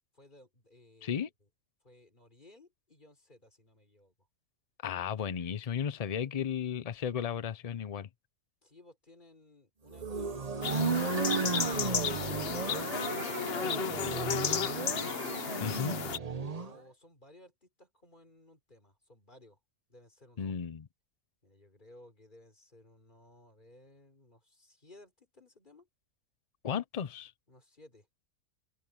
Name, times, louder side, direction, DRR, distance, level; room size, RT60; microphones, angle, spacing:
voice 1, 0.1-1.5 1.8-4.3 8.6-11.0 15.9-19.6 19.9-20.5 21.4-25.9 27.5-28.1, left 1 dB, 30° left, 4.6 m, -59 dB
voice 2, 4.8-8.1 15.6-16.0 20.4-20.9 26.6-27.3, left 8 dB, 70° left, 0.3 m, -34 dB
sound 1, 9.9-16.8, right 4 dB, 30° right, 0.9 m, -34 dB
sound 2, 10.6-16.2, left 7 dB, 50° left, 1.0 m, -34 dB
open air
omnidirectional pair, 1.6 m